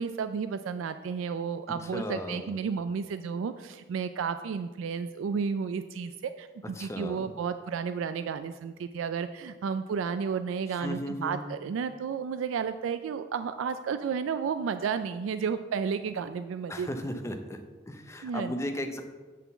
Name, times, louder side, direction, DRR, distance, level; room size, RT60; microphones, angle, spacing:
voice 1, 0.0-16.9 18.2-18.5, right 6 dB, 80° right, 10 dB, 0.3 m, -32 dB
voice 2, 1.9-2.5 6.8-7.3 10.7-11.4 16.7-17.6 17.9-19.0, left 1 dB, 15° left, 5 dB, 0.6 m, -35 dB
8.3 x 3.7 x 6.8 m, 1.3 s
head